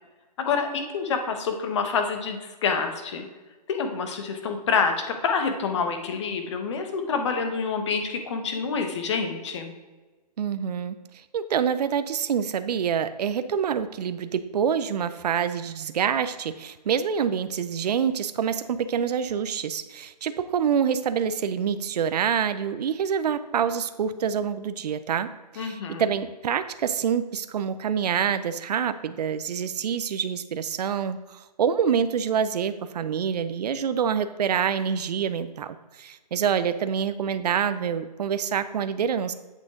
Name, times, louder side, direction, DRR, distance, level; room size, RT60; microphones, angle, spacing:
voice 1, 0.5-3.2 3.7-4.9 5.2-9.7 25.6-26.0, left 5 dB, 45° left, 6 dB, 1.2 m, -27 dB
voice 2, 10.4-39.3, right 7 dB, 70° right, 12 dB, 0.6 m, -26 dB
8.4 x 6.2 x 3.7 m, 1.3 s
hypercardioid pair, 160°, 21 cm